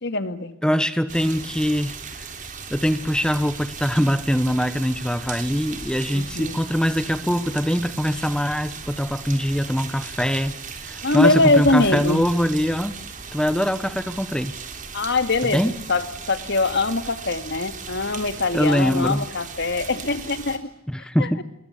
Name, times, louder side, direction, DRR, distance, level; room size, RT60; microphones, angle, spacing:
voice 1, 0.0-0.5 6.1-6.6 11.0-12.2 14.9-15.6 15.9-20.7 21.2-21.4, left 2 dB, 55° left, 10 dB, 2.3 m, -22 dB
voice 2, 0.6-2.3 2.7-13.0 13.3-14.5 15.5-15.7 18.5-19.3 20.9-21.4, equal, 5° left, 12 dB, 1.0 m, -23 dB
sound 1, 1.1-20.6, right 5 dB, 40° right, 3.5 m, -37 dB
27.5 x 22.5 x 8.4 m, 0.78 s
head